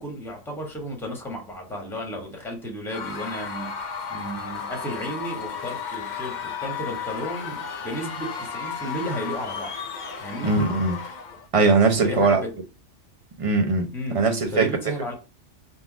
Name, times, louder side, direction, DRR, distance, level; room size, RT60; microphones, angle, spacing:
voice 1, 0.0-3.8 4.1-9.8 10.2-10.6 12.0-12.5 13.9-14.3 14.5-15.1, equal, ahead, 1.1 m, -33 dB
Screaming / Cheering / Crowd, 2.9-11.5, left 6 dB, 50° left, 0.6 m, -34 dB
voice 2, 10.4-11.0 11.5-12.4 13.4-14.7, right 3 dB, 35° right, 0.6 m, -20 dB
4.0 x 2.4 x 4.7 m
omnidirectional pair, 1.2 m